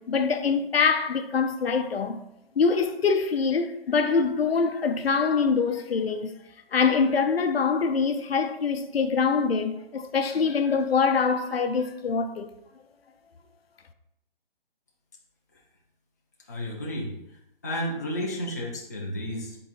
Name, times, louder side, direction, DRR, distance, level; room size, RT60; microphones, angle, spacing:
voice 1, 0.0-2.2 2.6-6.3 6.7-12.5, left 5 dB, 85° left, 0.6 m, -24 dB
voice 2, 16.5-17.1 17.6-19.6, equal, 20° left, 0.4 m, -32 dB
5.4 x 3.8 x 2.4 m
figure-of-eight pair, 150°, 30 cm